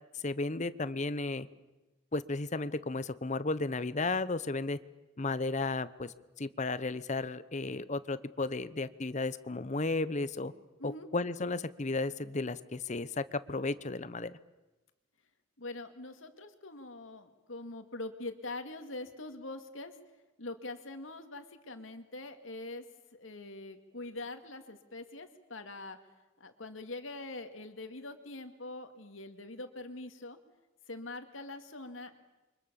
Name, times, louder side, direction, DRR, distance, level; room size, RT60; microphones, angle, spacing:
voice 1, 0.1-1.5 2.1-4.8 5.2-10.5 10.8-14.4, left 3 dB, 35° left, 15 dB, 0.9 m, -34 dB
voice 2, 15.6-19.9 20.4-22.8 23.1-26.0 26.4-30.4 30.9-32.1, left 2 dB, 85° left, 7 dB, 2.3 m, -43 dB
28.5 x 24.5 x 7.0 m, 1.1 s
head